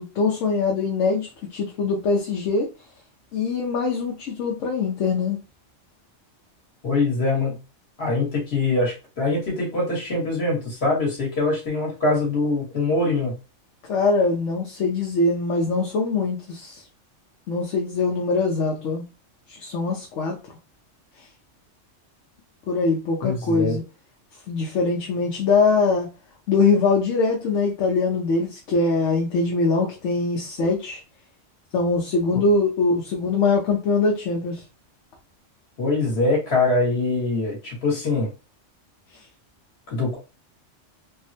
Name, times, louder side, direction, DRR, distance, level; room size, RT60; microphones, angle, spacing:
voice 1, 0.0-2.7 3.3-5.4 13.9-16.8 17.5-19.0 19.5-20.4 22.7-23.8 24.5-26.1 26.5-31.0 31.7-34.6, left 3 dB, 75° left, 0 dB, 1.0 m, -22 dB
voice 2, 6.8-7.6 8.0-13.3 23.2-23.8 35.8-38.3 39.9-40.2, left 2 dB, 55° left, -3 dB, 1.5 m, -23 dB
3.4 x 2.1 x 2.6 m, 0.30 s
omnidirectional pair, 1.3 m